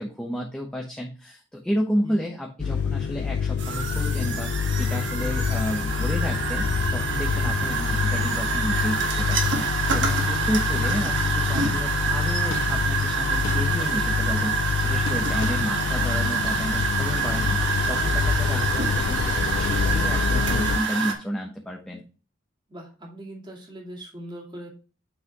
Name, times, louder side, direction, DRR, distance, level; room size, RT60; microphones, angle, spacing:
voice 1, 0.0-22.0, equal, 5° left, -1 dB, 1.0 m, -31 dB
sound 1, 2.6-20.8, left 6 dB, 55° left, 0.3 m, -26 dB
sound 2, 3.6-21.1, right 5 dB, 60° right, 1.6 m, -27 dB
sound 3, 12.1-18.8, left 2 dB, 80° left, 1.6 m, -41 dB
voice 2, 22.7-24.7, equal, 20° right, -1 dB, 2.3 m, -40 dB
8.4 x 5.7 x 3.0 m, 0.35 s
head